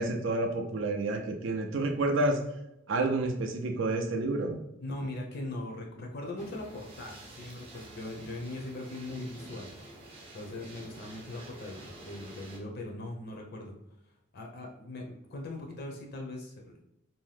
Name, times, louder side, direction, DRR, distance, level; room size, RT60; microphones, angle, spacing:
voice 1, 0.0-2.4 2.9-4.6, right 2 dB, 70° right, 5 dB, 0.4 m, -29 dB
voice 2, 4.8-9.7 10.3-13.7 14.3-16.8, left 1 dB, 55° left, 1 dB, 0.5 m, -40 dB
sound 1, 6.4-12.6, right 1 dB, 30° right, 0.7 m, -49 dB
2.6 x 2.1 x 3.2 m, 0.83 s
head